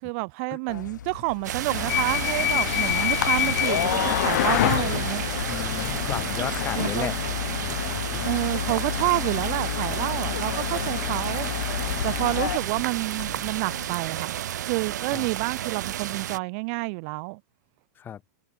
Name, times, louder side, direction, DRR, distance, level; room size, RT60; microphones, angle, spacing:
voice 1, 0.0-5.2 6.7-7.1 8.2-11.5 12.0-14.4 14.6-17.4, right 33 dB, 45° right, 4.9 m, -29 dB
sound 1, 0.7-13.9, left 9 dB, 85° left, 2.4 m, -35 dB
sound 2, 1.4-16.4, right 12 dB, 70° right, 3.8 m, -32 dB
sound 3, 1.7-12.5, left 17 dB, 55° left, 1.3 m, -28 dB
voice 2, 5.4-7.1 8.1-8.2 15.1-15.3 18.0-18.2, left 9 dB, 20° left, 4.5 m, -33 dB
hypercardioid pair, 140°, 10 cm